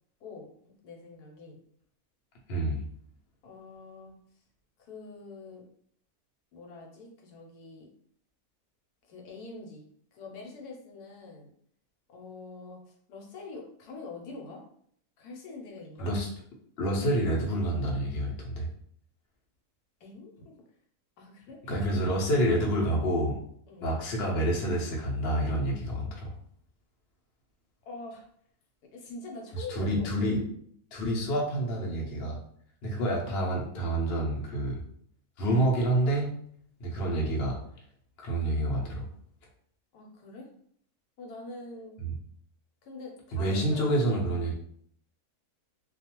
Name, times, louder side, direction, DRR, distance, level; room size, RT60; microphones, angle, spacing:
voice 1, 0.8-1.6 3.4-4.1 4.8-5.6 6.5-7.9 9.1-9.8 10.1-11.5 12.1-14.6 15.2-16.1 20.0-20.5 21.2-21.6 23.7-23.9 27.9-28.3 28.9-30.1 39.9-40.5 41.2-42.0 42.8-44.5, left 3 dB, 80° left, 1 dB, 1.1 m, -44 dB
voice 2, 2.5-2.8 16.0-16.3 16.8-18.7 21.7-23.4 23.8-26.3 29.7-30.4 30.9-32.4 32.8-34.8 35.4-36.3 36.8-37.6 38.2-39.1 42.0-42.1 43.3-44.5, right 1 dB, 55° left, -2 dB, 0.7 m, -28 dB
2.4 x 2.3 x 2.9 m, 0.64 s
omnidirectional pair, 1.6 m